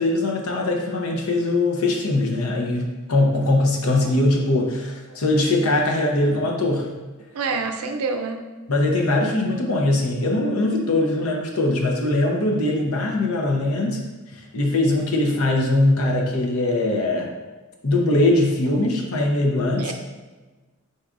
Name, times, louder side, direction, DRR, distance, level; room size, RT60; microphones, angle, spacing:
voice 1, 0.0-6.9 8.7-14.0 14.5-17.3 17.8-19.9, left 2 dB, 80° left, 0 dB, 0.8 m, -21 dB
voice 2, 7.3-8.4 16.4-16.5 19.8-19.9, right 4 dB, 85° right, 5 dB, 0.5 m, -27 dB
4.7 x 4.1 x 2.5 m, 1.2 s
head